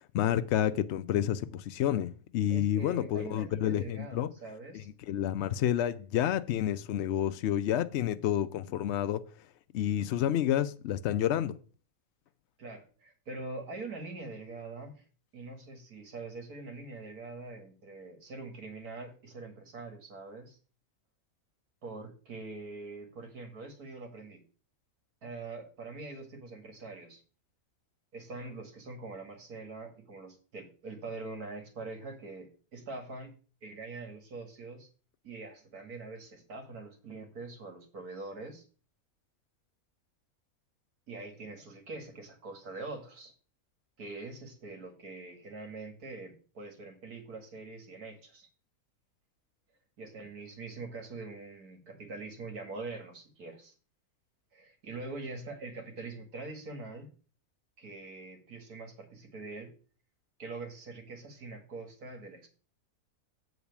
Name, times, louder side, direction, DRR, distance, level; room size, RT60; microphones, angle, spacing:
voice 1, 0.1-4.3 5.1-9.2 9.7-11.6, left 11 dB, 65° left, 0.7 m, -29 dB
voice 2, 2.5-4.9 12.6-15.0 15.3-20.6 21.8-24.4 25.2-27.2 28.1-33.3 33.6-34.9 35.2-38.7 41.1-43.3 44.0-48.5 50.0-53.7 54.5-57.1 57.8-59.7 60.4-62.5, right 3 dB, 85° right, 2.4 m, -44 dB
8.6 x 4.0 x 6.9 m
omnidirectional pair, 1.6 m